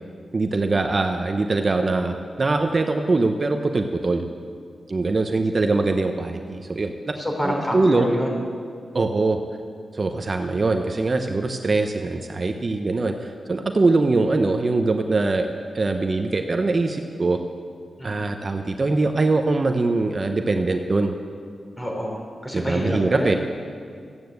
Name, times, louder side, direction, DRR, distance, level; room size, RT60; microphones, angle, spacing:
voice 1, 0.3-4.3 4.9-7.2 7.4-8.1 8.9-9.4 9.9-15.5 15.7-17.4 18.0-21.1 22.5-23.4, right 3 dB, 40° right, 5 dB, 0.8 m, -22 dB
voice 2, 7.2-8.3 18.0-18.2 21.7-23.4, equal, 20° left, 0 dB, 3.4 m, -27 dB
14.0 x 9.3 x 7.9 m, 2.2 s
wide cardioid pair, 90°, 0 cm